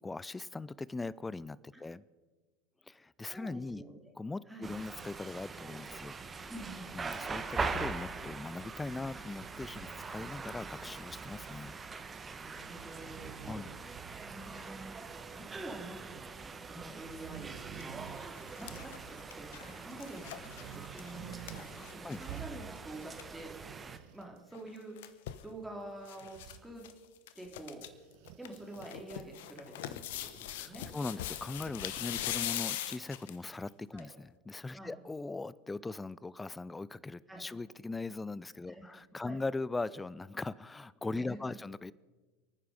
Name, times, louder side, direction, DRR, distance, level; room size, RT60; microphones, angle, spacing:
voice 1, 0.0-2.0 2.9-3.8 4.2-6.2 6.9-11.7 13.5-13.7 21.8-22.2 30.5-41.9, left 3 dB, 15° left, 21 dB, 0.5 m, -40 dB
voice 2, 3.3-4.0 4.5-4.7 6.5-6.9 12.3-13.7 14.3-23.7 24.1-25.0 25.4-26.8 27.3-27.8 28.4-30.9 33.9-34.1 34.7-34.9 37.3-37.4 38.7-38.9 39.2-39.4 41.2-41.4, right 1 dB, 5° right, 0 dB, 3.5 m, -48 dB
sound 1, 4.6-24.0, right 4 dB, 20° right, 1.3 m, -43 dB
sound 2, 9.4-10.6 12.2-12.3 12.6-14.6 14.8-14.9 16.8-19.4 20.4-21.7 21.9-22.9 23.3-24.7 26.2-26.7 27.8-28.9, right 10 dB, 55° right, 1.0 m, -50 dB
sound 3, 17.6-17.8 18.2-22.4 22.8-22.9 23.0-23.3 24.5-25.5 26.1-26.6 26.8-26.9 27.3-27.9 28.3-33.5 34.0-34.1, left 12 dB, 65° left, 1.0 m, -41 dB
28.5 x 9.5 x 5.2 m, 1.3 s
hypercardioid pair, 80°, 0 cm